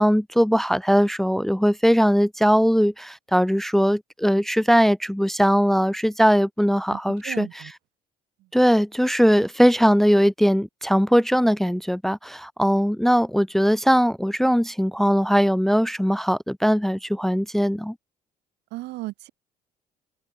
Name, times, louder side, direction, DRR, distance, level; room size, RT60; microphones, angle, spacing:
voice 1, 0.0-7.5 8.5-17.9, equal, ahead, 0.8 m, -20 dB
voice 2, 6.9-7.7 8.4-8.5 18.7-19.3, right 19 dB, 85° right, 6.7 m, -36 dB
open air
cardioid pair, 110°, 17 cm